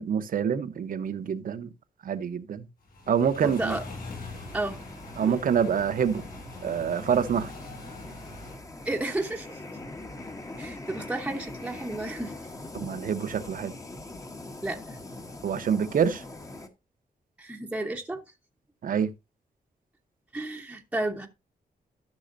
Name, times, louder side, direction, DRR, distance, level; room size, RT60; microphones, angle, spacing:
voice 1, 0.0-1.7 2.0-2.7 3.1-3.8 5.2-6.2 6.6-7.5 12.7-13.7 15.4-16.2 18.8-19.1, right 7 dB, 65° right, 0.9 m, -26 dB
sound 1, 2.8-8.6, left 2 dB, 80° left, 6.6 m, -43 dB
sound 2, 3.4-16.7, left 2 dB, 20° left, 1.2 m, -43 dB
voice 2, 3.4-3.8 4.5-4.8 5.2-5.4 8.8-9.6 10.6-12.3 14.6-14.8 17.4-18.2 20.3-21.3, right 2 dB, 10° right, 1.0 m, -32 dB
13.5 x 6.3 x 2.6 m
wide cardioid pair, 145°, 15 cm